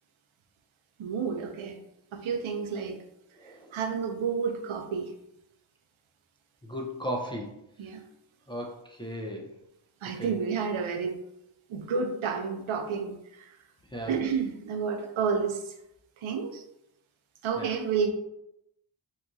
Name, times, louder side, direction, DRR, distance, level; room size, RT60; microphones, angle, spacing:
voice 1, 1.0-1.8 2.1-3.0 3.4-5.1 7.8-8.0 10.0-11.2 11.7-13.6 14.0-15.7 16.2-16.6 17.4-18.1, right 6 dB, 80° right, 5 dB, 0.5 m, -30 dB
voice 2, 6.6-7.5 8.5-9.5 10.2-10.3 13.9-14.1 17.6-17.7, equal, 10° left, -1 dB, 0.3 m, -35 dB
2.9 x 2.3 x 2.5 m, 0.82 s
wide cardioid pair, 70°, 47 cm